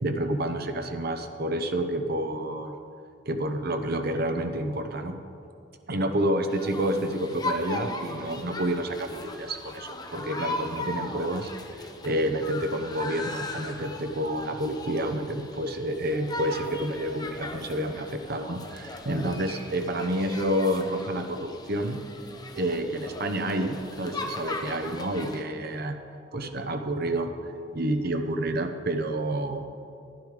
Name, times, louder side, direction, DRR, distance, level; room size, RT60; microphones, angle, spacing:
voice 1, 0.0-2.8 3.3-5.2 5.9-22.0 22.5-26.0 26.3-27.3 27.7-29.7, right 1 dB, 55° right, 6 dB, 0.9 m, -29 dB
sound 1, 6.5-25.4, left 2 dB, 20° left, 0.9 m, -38 dB
11.5 x 10.5 x 5.0 m, 2.5 s
head